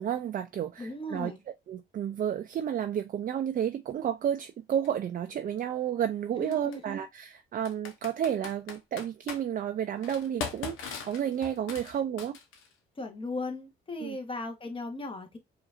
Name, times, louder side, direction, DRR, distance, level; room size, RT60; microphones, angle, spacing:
voice 1, 0.0-1.3 1.7-12.4 14.0-14.2, right 9 dB, 45° right, 0.4 m, -31 dB
voice 2, 0.8-1.4 6.4-7.0 13.0-15.4, left 2 dB, 25° left, 1.2 m, -37 dB
Computer keyboard, 4.8-4.9 6.5-6.8 7.6-9.4 10.0-12.7, left 6 dB, 90° left, 0.9 m, -39 dB
4.8 x 2.6 x 2.4 m
cardioid pair, 90°, 20 cm